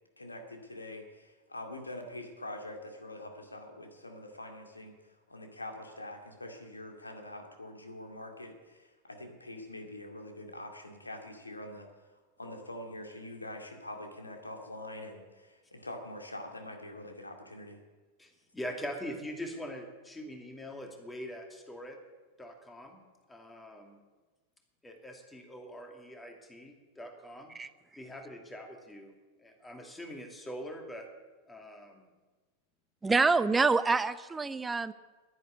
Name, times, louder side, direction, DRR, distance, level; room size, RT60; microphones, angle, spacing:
voice 1, 0.2-11.9 12.4-17.8, left 1 dB, 80° left, 3 dB, 2.3 m, -44 dB
voice 2, 18.2-22.0 22.4-23.0 23.3-24.0 24.8-27.5 28.0-29.1 29.4-31.1 31.5-32.1, equal, 10° left, 3 dB, 2.5 m, -43 dB
voice 3, 33.0-34.9, right 4 dB, 10° right, 15 dB, 0.7 m, -26 dB
11.0 x 10.5 x 9.5 m, 1.3 s
figure-of-eight pair, 90°, 0 cm